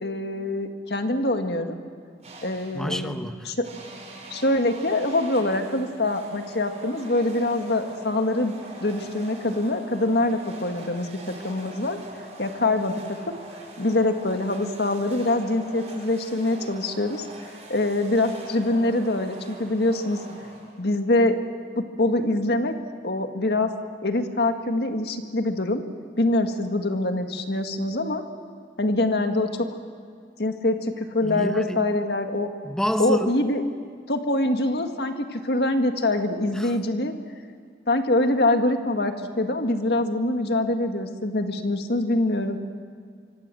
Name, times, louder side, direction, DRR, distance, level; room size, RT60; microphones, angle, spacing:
voice 1, 0.0-1.8 2.4-3.7 4.3-8.5 8.8-12.0 12.4-13.2 13.8-17.2 17.7-20.2 20.8-21.4 21.8-22.7 23.0-23.7 24.0-25.8 26.2-28.2 28.8-29.5 30.4-32.5 33.0-33.6 34.1-37.1 37.9-42.6, left 2 dB, 65° left, 1.9 m, -24 dB
sound 1, 2.2-2.9 3.6-21.0, right 1 dB, 40° right, 5.8 m, -43 dB
voice 2, 2.7-3.5 31.2-31.8 32.6-33.4 36.6-36.7, equal, 5° left, 1.1 m, -28 dB
26.0 x 24.5 x 7.7 m
head